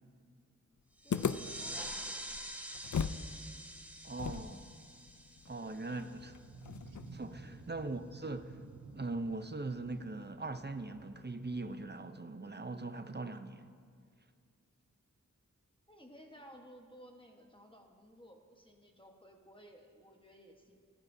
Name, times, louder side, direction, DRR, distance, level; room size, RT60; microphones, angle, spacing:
voice 1, 1.0-2.2 6.4-6.6 7.5-7.7 15.9-20.8, equal, 15° left, 1.3 m, -57 dB
sound 1, 1.0-6.3, right 1 dB, 5° right, 1.1 m, -46 dB
sound 2, 1.1-3.3 3.5-3.6 4.2-7.3, left 7 dB, 70° left, 0.5 m, -39 dB
voice 2, 4.0-4.7 5.5-6.4 7.1-8.6 8.9-13.7, right 2 dB, 35° right, 0.6 m, -41 dB
sound 3, 5.8-11.8, right 3 dB, 85° right, 1.0 m, -53 dB
19.0 x 13.0 x 2.7 m
wide cardioid pair, 60°, 31 cm